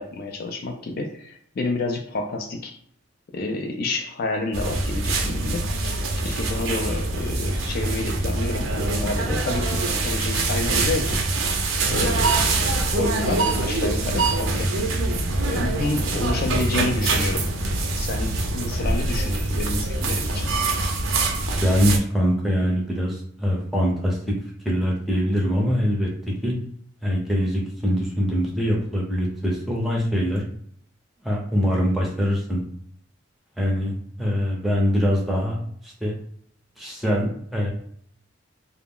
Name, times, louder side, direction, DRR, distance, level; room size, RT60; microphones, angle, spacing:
voice 1, 0.0-2.8 3.3-11.3 11.9-12.7 12.9-14.9 15.4-17.5 17.9-20.5, left 2 dB, 50° left, 3 dB, 0.3 m, -29 dB
sound 1, 4.5-22.0, right 2 dB, 80° right, 0.5 m, -24 dB
voice 2, 21.4-24.2 24.6-26.1 26.4-26.5 27.0-30.4 31.2-32.6 33.6-33.9 34.2-35.6 35.8-36.1 36.8-37.7, equal, ahead, -2 dB, 0.5 m, -23 dB
2.3 x 2.0 x 3.5 m, 0.66 s
head